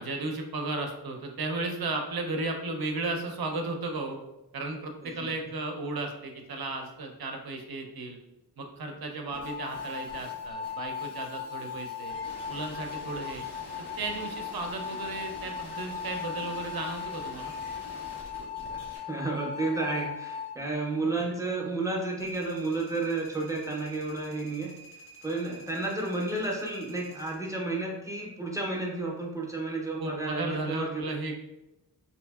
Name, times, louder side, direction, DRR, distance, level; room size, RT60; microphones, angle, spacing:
voice 1, 0.0-4.2 4.5-8.2 8.6-12.1 12.5-13.4 14.0-17.5 30.0-31.3, right 3 dB, 60° right, 3 dB, 0.6 m, -34 dB
sound 1, 9.3-19.0, equal, 85° left, 1.3 m, -47 dB
sound 2, 9.3-20.5, left 7 dB, 40° left, 0.6 m, -38 dB
voice 2, 19.1-24.7 25.2-31.1, right 2 dB, 10° right, -2 dB, 0.5 m, -32 dB
sound 3, 22.2-27.4, right 2 dB, 65° left, 0.8 m, -50 dB
2.7 x 2.6 x 2.3 m, 0.93 s
wide cardioid pair, 75°, 41 cm